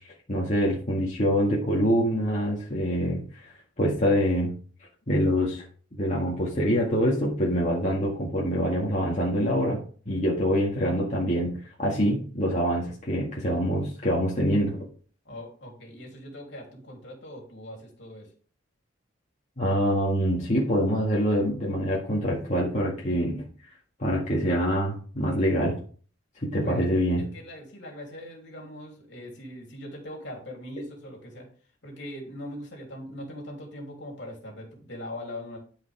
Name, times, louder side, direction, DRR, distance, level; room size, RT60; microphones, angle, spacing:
voice 1, 0.3-3.5 3.8-4.5 5.1-5.6 6.0-9.8 10.1-11.5 11.8-14.9 19.6-23.4 24.0-25.7 26.4-27.2, equal, 40° left, -5 dB, 2.0 m, -25 dB
voice 2, 15.3-18.3 26.6-31.5 31.8-35.6, left 1 dB, 65° left, 0 dB, 3.3 m, -41 dB
12.5 x 5.2 x 3.6 m, 0.43 s
head